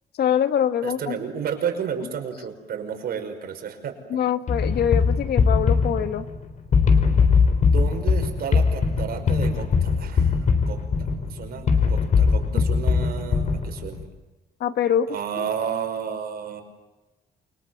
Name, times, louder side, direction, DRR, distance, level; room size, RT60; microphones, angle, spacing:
voice 1, 0.2-1.2 4.1-6.2 12.5-12.6 14.6-15.1 15.4-15.5, left 9 dB, 70° left, 9 dB, 1.8 m, -24 dB
voice 2, 0.8-3.9 7.7-10.4 10.7-10.8 11.3-14.1 15.1-16.6, right 7 dB, 60° right, 5 dB, 5.7 m, -31 dB
sound 1, 4.5-14.0, left 5 dB, 45° left, 3.6 m, -21 dB
29.5 x 24.0 x 8.0 m, 1.1 s
cardioid pair, 180°, 18 cm